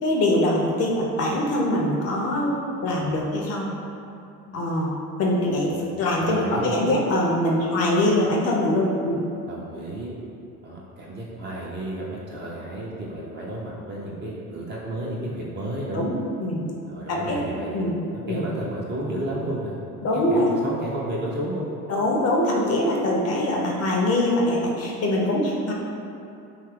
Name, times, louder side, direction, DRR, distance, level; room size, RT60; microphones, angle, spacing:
voice 1, 0.0-2.6 2.8-3.7 4.5-9.2 15.9-16.1 16.4-16.6 17.1-17.4 17.7-18.0 18.2-18.5 20.0-20.5 21.9-25.7, left 1 dB, 35° left, -2 dB, 0.4 m, -23 dB
voice 2, 6.2-6.8 9.5-10.1 10.6-16.0 16.9-17.8 18.1-19.8 20.1-21.7, right 1 dB, 25° right, -5 dB, 0.4 m, -32 dB
2.8 x 2.4 x 3.1 m, 2.7 s
hypercardioid pair, 65°, 46 cm